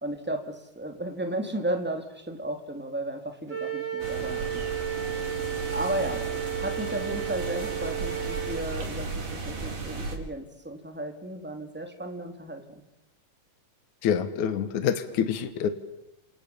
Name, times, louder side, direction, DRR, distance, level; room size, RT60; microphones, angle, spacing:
voice 1, 0.0-4.6 5.7-6.2 6.6-12.8, right 1 dB, 5° right, 5 dB, 2.5 m, -34 dB
Wind instrument woodwind instrument, 3.5-8.6, right 10 dB, 30° right, 3.6 m, -33 dB
sound 1, 4.0-10.2, right 3 dB, 85° right, 6.3 m, -35 dB
voice 2, 14.0-15.7, left 8 dB, 65° left, 11 dB, 2.7 m, -26 dB
29.0 x 26.5 x 7.2 m, 0.93 s
omnidirectional pair, 3.8 m